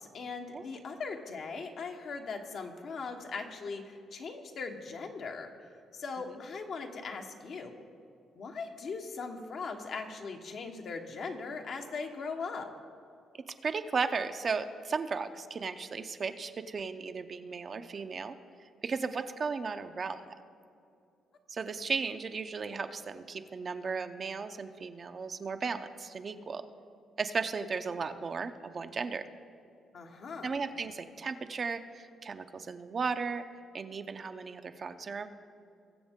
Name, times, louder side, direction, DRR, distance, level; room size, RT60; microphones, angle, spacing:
voice 1, 0.0-5.5 5.9-7.7 8.3-12.7 29.9-30.5, left 4 dB, 60° left, 3 dB, 1.2 m, -39 dB
voice 2, 13.3-18.4 18.8-20.2 21.5-26.7 27.2-29.2 30.4-33.4 33.7-35.3, right 5 dB, 45° right, 8 dB, 0.6 m, -35 dB
21.5 x 7.2 x 3.7 m, 2.5 s
cardioid pair, 90°, 0 cm